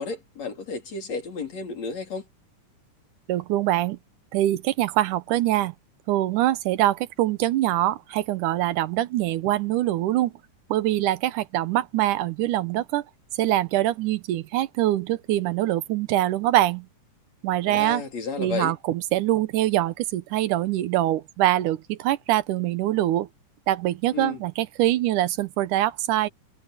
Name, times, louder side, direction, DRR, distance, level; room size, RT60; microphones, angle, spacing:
voice 1, 0.0-2.3 17.6-18.7 24.1-24.4, left 4 dB, 55° left, 4.8 m, -32 dB
voice 2, 3.3-4.0 4.3-5.7 6.1-10.3 10.7-13.0 13.3-16.9 17.4-18.0 18.4-23.3 23.7-26.3, right 14 dB, 90° right, 2.4 m, -24 dB
omnidirectional pair, 3.6 m